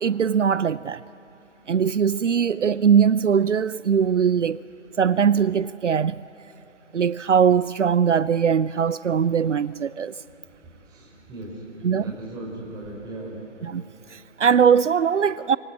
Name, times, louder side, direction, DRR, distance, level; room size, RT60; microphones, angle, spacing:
voice 1, 0.0-1.0 1.7-4.6 5.0-6.2 6.9-10.1 11.8-12.0 13.7-13.8 14.1-15.6, right 7 dB, 75° right, 0.6 m, -20 dB
voice 2, 10.2-13.7, right 1 dB, 10° right, 5.0 m, -39 dB
28.5 x 24.0 x 8.5 m
figure-of-eight pair, 140°, 37 cm